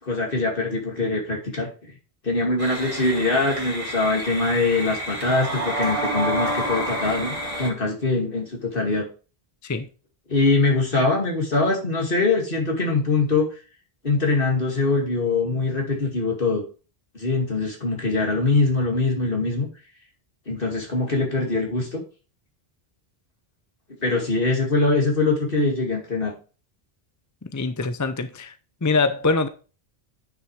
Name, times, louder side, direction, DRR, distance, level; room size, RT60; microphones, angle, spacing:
voice 1, 0.0-1.9 2.2-9.1 10.3-13.5 14.0-16.6 17.1-19.7 20.5-22.0 24.0-26.3, left 3 dB, 60° left, 2.6 m, -23 dB
sound 1, 2.6-7.7, right 1 dB, 35° right, 2.1 m, -29 dB
voice 2, 27.5-28.5 28.8-29.5, left 3 dB, 20° left, 0.5 m, -23 dB
9.5 x 5.9 x 3.3 m
omnidirectional pair, 1.0 m